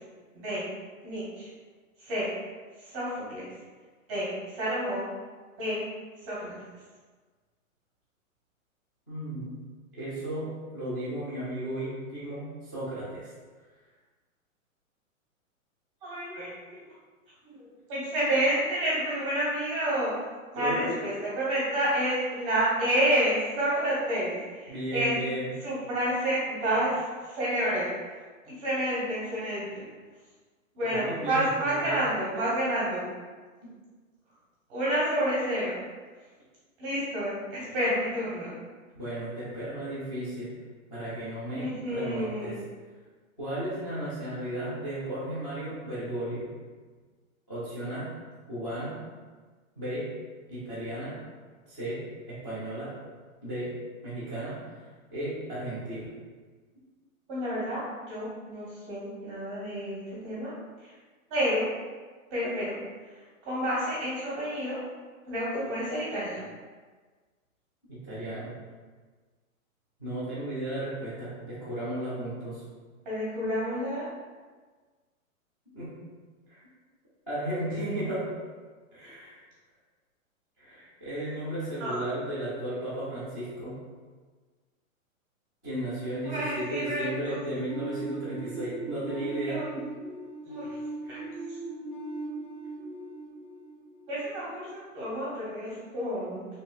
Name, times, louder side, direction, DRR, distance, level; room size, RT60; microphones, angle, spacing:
voice 1, 0.3-0.7 1.0-1.5 2.0-2.3 2.8-3.4 4.1-5.1 5.6-5.8 6.2-6.5 16.0-16.8 17.4-20.1 20.5-25.1 25.6-27.9 28.5-29.8 30.7-33.1 34.7-35.8 36.8-38.6 41.5-42.6 57.3-60.5 60.8-60.9 61.3-61.7 62.3-62.8 63.4-64.8 65.3-66.4 73.0-74.1 81.8-82.0 86.2-87.4 89.5-89.6 90.5-90.7 91.1-91.2 91.5-91.6 94.1-96.5, right 1 dB, 20° right, -7 dB, 0.7 m, -29 dB
voice 2, 9.1-9.6 9.9-13.3 20.5-21.0 24.7-25.5 30.8-32.0 33.6-33.7 38.9-40.5 40.9-42.6 43.4-46.5 47.5-48.1 48.5-49.0 49.8-50.1 50.5-51.2 51.7-52.9 53.4-53.8 54.0-54.6 55.1-56.1 67.9-68.5 70.0-72.6 75.7-75.9 76.5-76.6 77.3-78.4 78.9-79.4 80.6-83.8 85.6-89.6 91.0-91.1, right 1 dB, 10° left, -17 dB, 0.3 m, -34 dB
sound 1, 87.7-94.4, right 2 dB, 30° left, 0.8 m, -39 dB
3.0 x 2.0 x 3.5 m, 1.4 s
hypercardioid pair, 150°, 42 cm